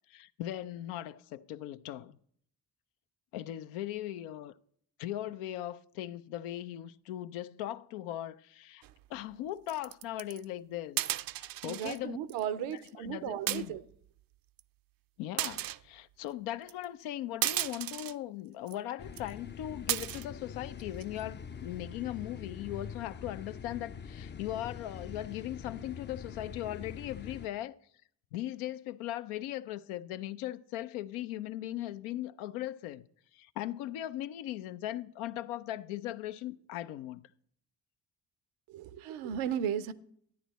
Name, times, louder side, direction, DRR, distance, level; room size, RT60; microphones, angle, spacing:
voice 1, 0.1-2.2 3.3-4.5 5.0-8.8 9.1-12.2 13.0-13.8 15.2-27.8 28.3-33.1 33.3-37.2, left 13 dB, 80° left, 0.6 m, -39 dB
sound 1, 8.8-9.0 9.7-10.4 11.0-12.0 12.3-12.4 12.7-12.9 13.5-14.0 14.6-14.7 15.4-15.8 16.7-16.8 17.4-18.1 18.7-18.8 19.2-19.3 19.9-20.3 20.8-21.2, right 13 dB, 45° right, 0.4 m, -34 dB
voice 2, 11.6-13.8 38.7-39.9, right 9 dB, 80° right, 0.7 m, -35 dB
sound 2, 19.0-27.5, left 6 dB, 25° left, 0.4 m, -44 dB
11.0 x 9.3 x 4.1 m
hypercardioid pair, 45°, 49 cm